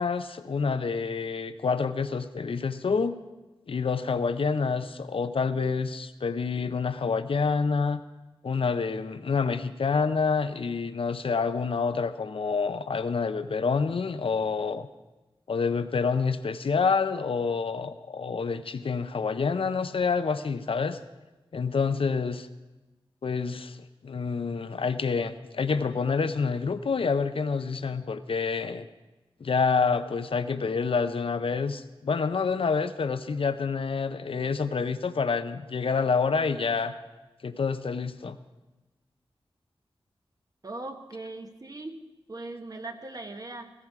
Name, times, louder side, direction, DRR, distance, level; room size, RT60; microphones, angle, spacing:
voice 1, 0.0-3.2 3.7-8.0 8.4-14.9 15.5-21.0 21.5-22.5 23.2-23.8 24.0-28.9 29.4-36.9 37.4-38.4, left 5 dB, 70° left, 11 dB, 0.7 m, -27 dB
voice 2, 40.6-42.0 42.3-43.7, right 2 dB, 40° right, 6 dB, 1.3 m, -39 dB
16.5 x 14.5 x 4.8 m, 1.1 s
wide cardioid pair, 80°, 10 cm